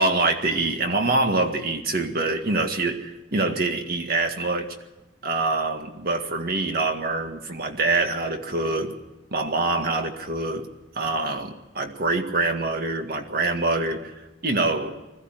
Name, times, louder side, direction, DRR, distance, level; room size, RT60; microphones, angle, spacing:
voice 1, 0.0-4.7 5.2-8.9 9.3-10.7 11.0-14.1 14.4-14.9, right 2 dB, 55° right, 5 dB, 1.9 m, -25 dB
21.0 x 14.5 x 9.2 m, 1.0 s
head